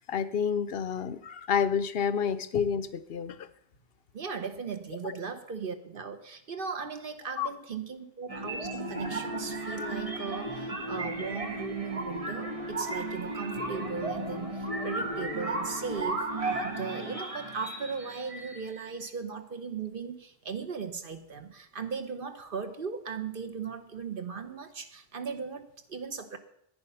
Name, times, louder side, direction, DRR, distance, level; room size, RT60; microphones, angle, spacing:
voice 1, 0.0-3.4 5.0-5.2 7.4-7.5, left 7 dB, 70° left, 14 dB, 0.9 m, -29 dB
voice 2, 4.1-26.4, right 5 dB, 60° right, 8 dB, 1.2 m, -37 dB
sound 1, 8.3-18.9, right 2 dB, 35° right, 1.5 m, -34 dB
10.5 x 9.4 x 5.6 m, 0.74 s
omnidirectional pair, 1.0 m